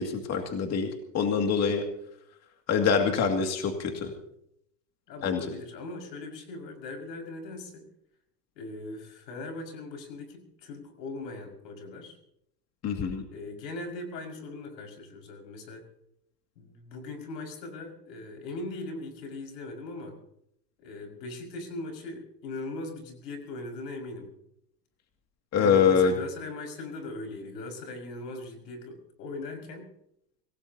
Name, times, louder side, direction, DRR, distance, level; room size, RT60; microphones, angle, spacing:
voice 1, 0.0-1.8 2.7-4.1 5.2-5.4 12.8-13.2 25.5-26.1, left 6 dB, 30° left, 4 dB, 2.4 m, -25 dB
voice 2, 5.1-7.9 8.6-12.2 13.3-15.8 16.6-20.2 20.8-24.3 25.6-29.9, left 2 dB, 85° left, 4 dB, 5.9 m, -39 dB
25.0 x 18.0 x 2.9 m, 0.73 s
supercardioid pair, 125°, 49 cm